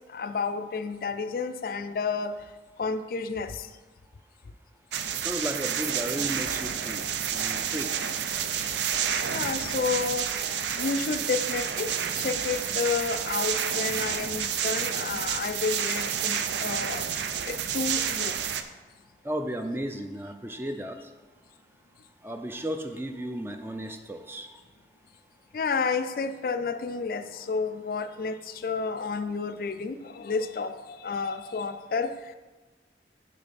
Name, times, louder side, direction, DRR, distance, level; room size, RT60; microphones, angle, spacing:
voice 1, 0.1-2.4 2.8-3.7 9.3-17.1 17.5-18.4 25.5-32.3, left 4 dB, 55° left, 10 dB, 0.4 m, -31 dB
sound 1, 4.9-18.6, right 8 dB, 85° right, 0.5 m, -30 dB
voice 2, 5.2-7.0 7.3-7.9 19.2-21.0 22.2-24.5, right 1 dB, 15° right, 6 dB, 0.4 m, -34 dB
6.5 x 6.4 x 4.1 m, 1.3 s
head